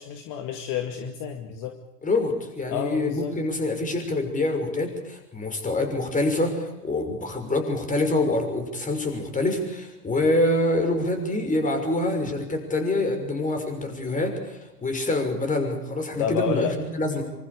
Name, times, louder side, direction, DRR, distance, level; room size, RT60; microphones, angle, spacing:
voice 1, 0.0-1.8 2.7-3.3 16.2-16.8, left 8 dB, 45° left, 6 dB, 2.2 m, -30 dB
voice 2, 2.0-17.2, left 2 dB, 15° left, 5 dB, 6.1 m, -26 dB
25.5 x 25.5 x 5.1 m, 0.97 s
figure-of-eight pair, 90°, 46 cm